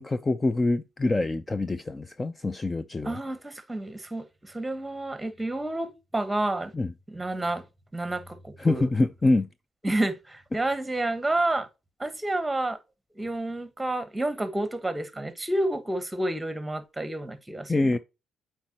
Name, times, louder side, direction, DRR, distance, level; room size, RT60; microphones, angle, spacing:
voice 1, 0.0-3.2 6.7-6.9 8.6-9.5 17.7-18.0, left 2 dB, 20° left, 0.4 m, -25 dB
voice 2, 3.0-6.7 7.1-7.6 7.9-8.9 9.8-11.7 12.0-12.8 13.2-17.7, right 1 dB, 10° right, 1.2 m, -29 dB
8.2 x 4.5 x 2.9 m
cardioid pair, 90°, 0 cm